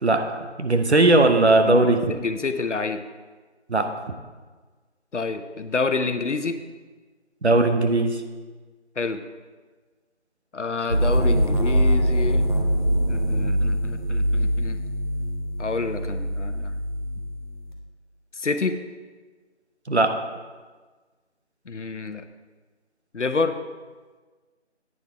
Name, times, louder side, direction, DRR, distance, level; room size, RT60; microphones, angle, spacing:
voice 1, 0.0-2.1 3.7-3.9 7.4-8.2 19.9-20.1, right 2 dB, 65° right, 6 dB, 1.0 m, -19 dB
voice 2, 1.6-3.0 5.1-6.6 9.0-9.2 10.5-12.5 13.1-14.8 15.6-16.8 18.3-18.8 21.7-22.2 23.1-23.6, left 4 dB, 75° left, 9 dB, 0.8 m, -28 dB
sound 1, 10.9-17.7, equal, 40° right, 1.1 m, -23 dB
9.2 x 6.7 x 4.6 m, 1.4 s
figure-of-eight pair, 175°, 36 cm